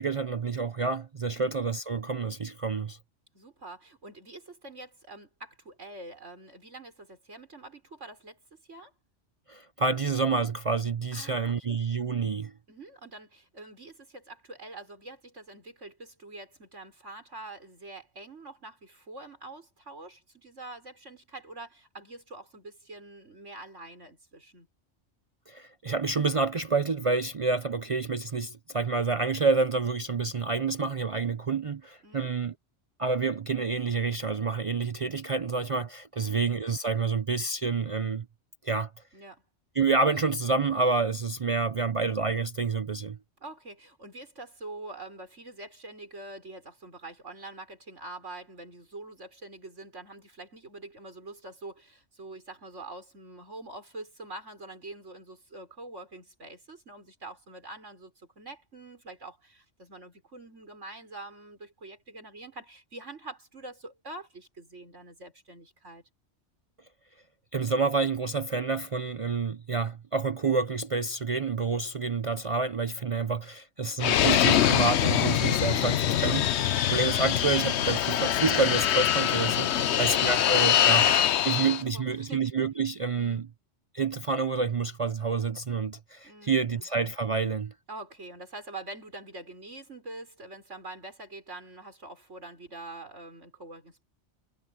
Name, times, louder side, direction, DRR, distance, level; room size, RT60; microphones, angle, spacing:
voice 1, 0.0-3.0 9.5-12.5 25.5-32.5 33.0-38.3 38.6-38.9 39.8-43.2 67.5-76.5 76.9-81.1 81.4-83.5 83.9-87.7, right 4 dB, 45° right, 0.4 m, -28 dB
voice 2, 3.3-8.4 8.7-8.9 11.1-11.8 12.7-24.7 32.0-32.3 36.2-36.4 39.1-39.4 41.6-41.9 43.4-66.0 76.6-76.7 79.7-80.3 81.5-82.5 83.1-83.4 86.2-86.9 87.9-94.0, right 2 dB, 80° right, 6.3 m, -45 dB
Fixed-wing aircraft airplane, 74.0-81.8, left 10 dB, 70° left, 0.9 m, -24 dB
omnidirectional pair, 1.2 m